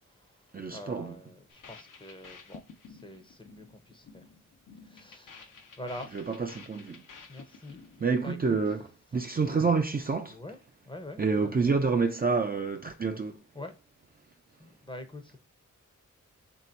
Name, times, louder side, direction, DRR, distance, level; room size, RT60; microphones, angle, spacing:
voice 1, 0.0-4.3 4.7-6.1 7.3-7.8 8.2-8.6 10.3-10.6 10.8-11.7 13.5-13.8 14.6-15.4, left 1 dB, 15° left, 0.6 m, -45 dB
voice 2, 0.5-1.1 6.1-7.0 8.0-8.8 9.1-10.4 11.2-13.4, right 4 dB, 30° right, 0.4 m, -28 dB
sound 1, 1.5-8.8, left 5 dB, 80° left, 0.7 m, -52 dB
3.2 x 2.7 x 4.4 m
wide cardioid pair, 85°, 31 cm